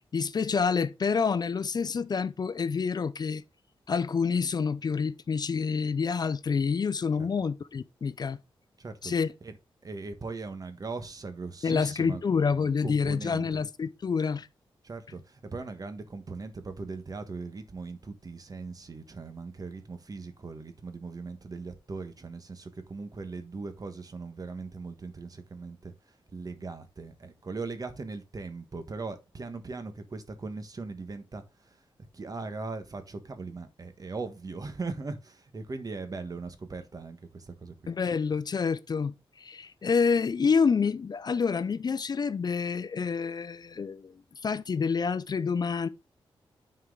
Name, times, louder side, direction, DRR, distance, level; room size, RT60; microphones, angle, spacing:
voice 1, 0.1-3.4 3.9-8.4 9.0-9.3 11.6-14.5 37.9-45.9, left 5 dB, 45° left, 0.5 m, -28 dB
voice 2, 8.8-9.5 9.8-12.2 12.8-13.6 14.8-25.9 26.3-31.8 32.1-37.7, right 3 dB, 40° right, 1.3 m, -39 dB
9.5 x 4.6 x 3.8 m
cardioid pair, 85°, 10 cm